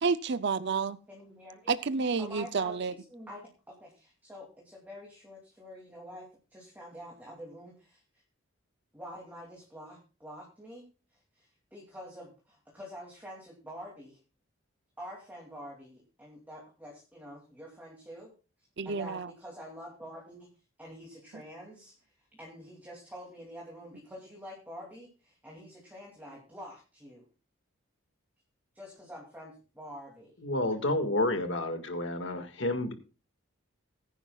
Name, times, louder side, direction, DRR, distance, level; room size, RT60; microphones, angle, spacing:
voice 1, 0.0-1.0 1.7-2.9 18.8-19.3, right 5 dB, 55° right, 14 dB, 0.5 m, -30 dB
voice 2, 1.1-1.7 2.2-8.2 8.9-10.9 11.1-14.2 15.0-18.3 18.8-20.5 20.8-27.3 28.7-30.3, equal, 10° right, -3 dB, 2.6 m, -47 dB
voice 3, 30.4-32.9, left 2 dB, 60° left, 6 dB, 1.8 m, -30 dB
19.5 x 10.5 x 2.4 m, 0.34 s
head